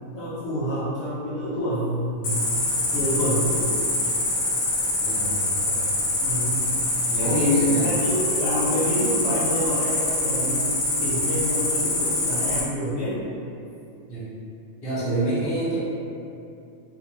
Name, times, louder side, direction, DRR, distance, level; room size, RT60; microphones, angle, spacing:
voice 1, 0.1-2.6 2.9-3.7 6.2-6.7 7.3-10.7 11.0-13.2, equal, 60° left, -10 dB, 0.7 m, -27 dB
Cricket, 2.2-12.6, left 2 dB, 85° left, 0.4 m, -25 dB
voice 2, 5.0-5.8 7.1-7.9 14.1-14.3 14.8-15.8, equal, 20° left, -10 dB, 0.7 m, -26 dB
2.7 x 2.2 x 2.9 m, 2.6 s
omnidirectional pair, 1.4 m